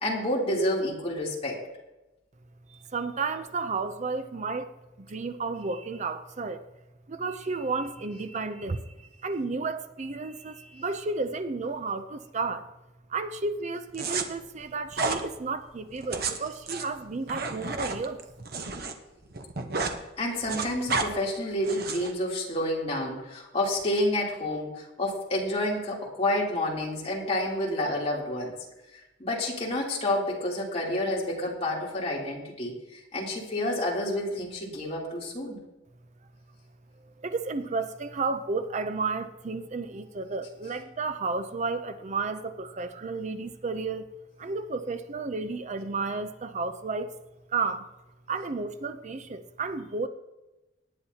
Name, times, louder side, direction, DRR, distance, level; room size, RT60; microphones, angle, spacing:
voice 1, 0.0-1.6 20.2-28.5 28.9-35.6, left 1 dB, 35° left, -4 dB, 3.0 m, -29 dB
voice 2, 2.7-4.7 5.0-6.6 7.1-12.7 13.1-18.2 37.2-44.1 44.4-47.1 47.5-47.9 48.3-50.1, right 4 dB, 40° right, 10 dB, 0.5 m, -32 dB
sound 1, 13.9-14.2 14.9-15.2 16.0-18.9 19.2-20.0 20.3-21.1 21.6-22.1, right 4 dB, 55° right, 1.0 m, -31 dB
18.5 x 10.5 x 2.8 m, 1.0 s
head